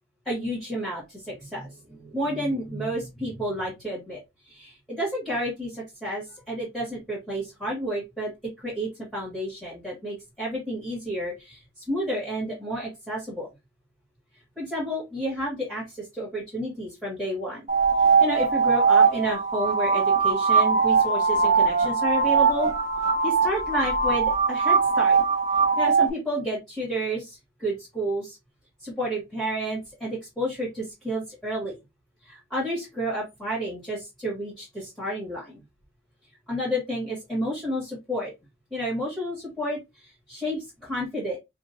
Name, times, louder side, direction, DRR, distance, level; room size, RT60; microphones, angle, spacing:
voice 1, 0.2-4.2 4.4-8.3 8.6-13.5 14.5-17.6 18.2-22.7 23.2-25.2 25.8-28.4 28.8-31.7 32.2-35.6 36.5-38.3 38.7-41.4, equal, ahead, -6 dB, 1.7 m, -31 dB
sound 1, 17.7-26.1, right 5 dB, 40° right, 1.0 m, -21 dB
5.1 x 2.4 x 2.7 m, 0.23 s
head